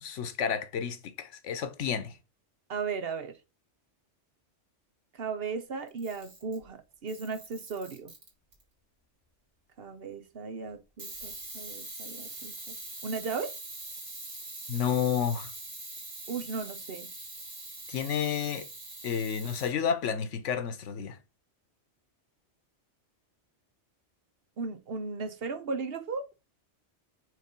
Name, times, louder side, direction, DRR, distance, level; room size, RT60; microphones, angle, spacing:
voice 1, 0.0-2.2 14.7-15.5 17.9-18.7 19.0-21.2, left 7 dB, 90° left, 1.2 m, -30 dB
voice 2, 2.7-3.3 5.2-8.1 9.8-12.5 13.0-13.5 16.3-17.1 24.6-26.3, right 4 dB, 60° right, 1.0 m, -36 dB
Camera, 5.9-6.6 7.1-8.6 11.0-19.7, right 2 dB, 75° right, 2.4 m, -43 dB
5.1 x 4.0 x 5.2 m
omnidirectional pair, 1.2 m